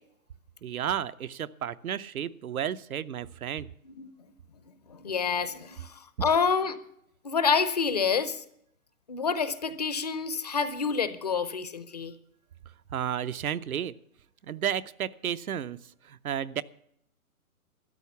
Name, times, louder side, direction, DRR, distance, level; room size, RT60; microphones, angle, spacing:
voice 1, 0.6-3.7 12.9-13.9 14.4-16.6, right 9 dB, 75° right, 14 dB, 0.7 m, -32 dB
voice 2, 4.9-6.8 7.2-8.4 9.1-12.1, left 5 dB, 30° left, 13 dB, 0.5 m, -28 dB
13.5 x 9.2 x 6.9 m, 0.72 s
hypercardioid pair, 145°, 43 cm